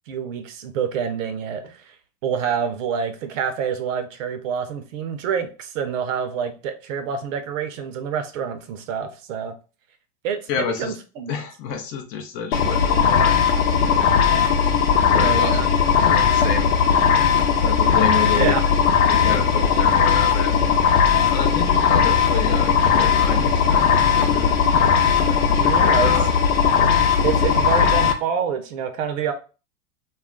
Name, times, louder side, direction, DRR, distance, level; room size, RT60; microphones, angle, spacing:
voice 1, 0.1-1.9 2.2-9.5 10.2-11.3 15.2-15.7 18.2-18.6 25.6-26.1 27.2-29.3, right 7 dB, 60° right, 0.7 m, -27 dB
voice 2, 10.5-10.9 11.3-13.4 14.9-15.7 16.0-16.7 17.6-18.5 19.1-20.6 21.3-24.6 25.2-26.3, left 6 dB, 30° left, 0.4 m, -29 dB
sound 1, 12.5-28.1, left 7 dB, 75° left, 0.7 m, -18 dB
2.3 x 2.1 x 3.6 m
hypercardioid pair, 105°, 43 cm